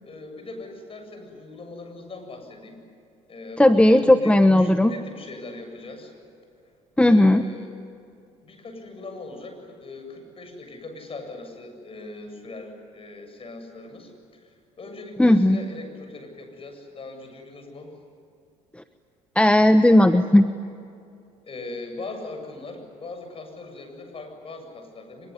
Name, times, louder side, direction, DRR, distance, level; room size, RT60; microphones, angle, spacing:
voice 1, 0.0-2.8 3.3-6.1 7.1-7.7 8.4-18.0 21.4-25.3, left 2 dB, 35° left, 5 dB, 7.8 m, -40 dB
voice 2, 3.6-4.9 7.0-7.4 15.2-15.6 19.4-20.5, left 1 dB, 5° left, 9 dB, 1.1 m, -16 dB
24.5 x 23.0 x 9.9 m, 2.5 s
supercardioid pair, 70°, 15 cm